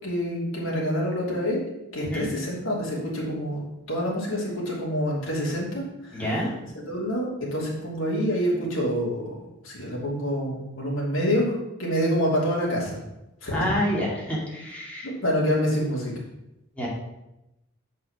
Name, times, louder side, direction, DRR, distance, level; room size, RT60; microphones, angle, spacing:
voice 1, 0.0-1.6 1.9-3.6 3.9-6.2 6.9-9.3 9.6-13.0 13.4-13.5 15.0-16.1, equal, 75° left, -4 dB, 3.0 m, -27 dB
voice 2, 6.1-6.5 13.5-15.1 16.8-16.9, equal, 5° left, -5 dB, 2.4 m, -28 dB
7.7 x 5.3 x 5.9 m, 0.92 s
head